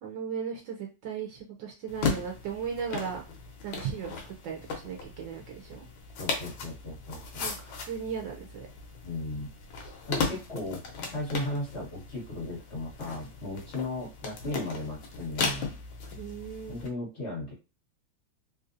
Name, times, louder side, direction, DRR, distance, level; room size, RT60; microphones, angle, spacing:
voice 1, 0.0-3.2 3.6-5.8 7.4-8.7 16.2-16.8, right 7 dB, 75° right, 1 dB, 1.3 m, -37 dB
sound 1, 1.9-16.9, left 5 dB, 85° left, 1.6 m, -37 dB
voice 2, 6.2-7.5 9.0-9.5 10.1-10.8 11.1-15.7 16.7-17.5, left 2 dB, 35° left, -5 dB, 1.9 m, -36 dB
3.6 x 2.6 x 2.6 m, 0.30 s
omnidirectional pair, 2.1 m